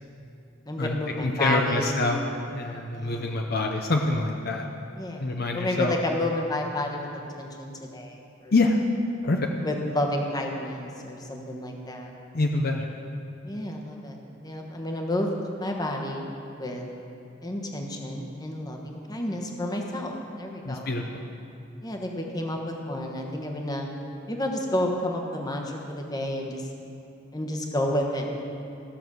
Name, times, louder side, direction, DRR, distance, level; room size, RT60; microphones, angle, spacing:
voice 1, 0.7-2.0 2.9-3.4 4.9-8.2 8.4-8.5 9.6-12.1 13.4-14.2 14.4-15.3 15.6-16.3 16.6-16.8 17.4-20.9 21.8-23.9 24.3-26.6 27.3-28.4, left 1 dB, 20° left, 1 dB, 1.2 m, -30 dB
voice 2, 1.2-2.2 2.5-4.7 5.2-5.9 8.5-8.8 9.2-9.4 12.3-12.9 20.7-21.0, left 2 dB, 50° left, 2 dB, 0.7 m, -25 dB
14.5 x 6.9 x 6.3 m, 2.7 s
head